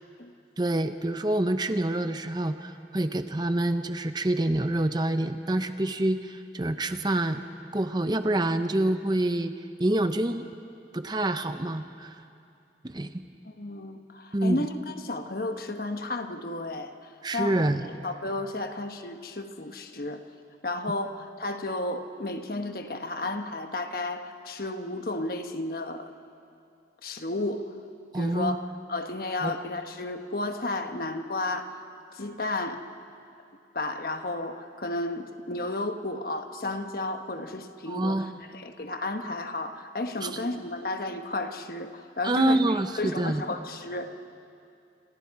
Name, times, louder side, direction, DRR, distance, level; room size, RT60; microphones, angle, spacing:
voice 1, 0.6-7.4 7.7-9.5 9.8-10.5 10.9-12.1 12.8-13.1 14.3-14.6 17.2-17.9 28.1-28.6 29.4-29.5 37.9-38.4 40.2-40.3 42.2-43.4, right 1 dB, 25° right, 9 dB, 0.7 m, -27 dB
voice 2, 13.4-16.9 17.3-17.7 18.0-20.2 20.6-26.1 27.0-27.7 28.1-31.8 32.1-32.8 33.7-42.6 42.9-44.1, left 2 dB, 50° left, 6 dB, 1.2 m, -33 dB
27.5 x 26.5 x 4.8 m, 2.5 s
head